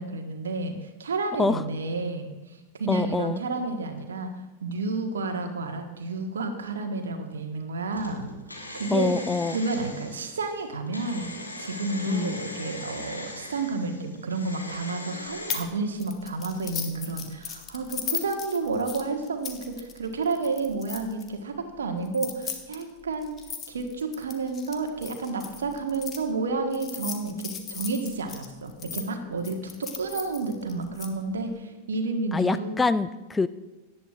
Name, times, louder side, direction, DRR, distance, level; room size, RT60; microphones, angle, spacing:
voice 1, 0.0-4.3 4.6-8.3 8.7-9.2 9.5-11.3 11.6-23.3 23.7-32.8, right 3 dB, 70° right, 5 dB, 1.4 m, -30 dB
voice 2, 2.9-3.4 8.9-9.6 12.0-12.4 32.3-33.5, left 4 dB, 10° left, 13 dB, 0.3 m, -25 dB
sound 1, 7.9-15.6, left 1 dB, 85° left, 1.5 m, -40 dB
sound 2, 15.5-15.7 16.0-21.3 22.1-26.2 26.7-29.0 29.4-31.1, left 7 dB, 30° left, 1.2 m, -37 dB
17.5 x 11.5 x 2.5 m, 1.1 s
figure-of-eight pair, 90°, 0 cm